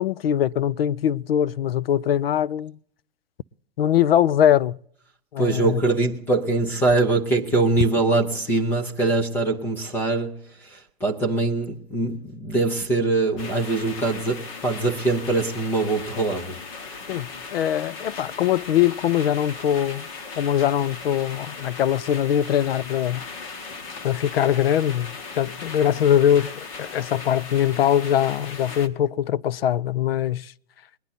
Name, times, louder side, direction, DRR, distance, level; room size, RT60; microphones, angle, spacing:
voice 1, 0.0-2.8 3.8-4.8 5.3-5.8 17.1-20.1 20.4-23.2 24.0-30.5, left 10 dB, 70° left, 0.6 m, -22 dB
voice 2, 5.4-17.0, right 3 dB, 5° left, 0.5 m, -23 dB
sound 1, 13.4-28.9, left 4 dB, 35° left, 1.1 m, -38 dB
20.5 x 10.0 x 4.1 m
hypercardioid pair, 155°, 30 cm